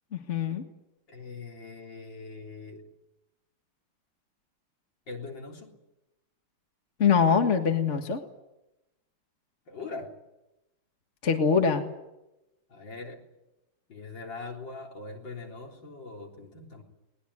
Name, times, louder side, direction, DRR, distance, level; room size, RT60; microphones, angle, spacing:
voice 1, 0.1-0.6 7.0-8.2 11.2-11.9, left 6 dB, 35° left, 4 dB, 1.8 m, -23 dB
voice 2, 1.1-2.8 5.1-5.7 9.7-10.1 12.7-13.3 13.9-16.8, left 3 dB, 60° left, 1 dB, 4.5 m, -41 dB
21.5 x 20.5 x 9.8 m, 0.95 s
omnidirectional pair, 2.3 m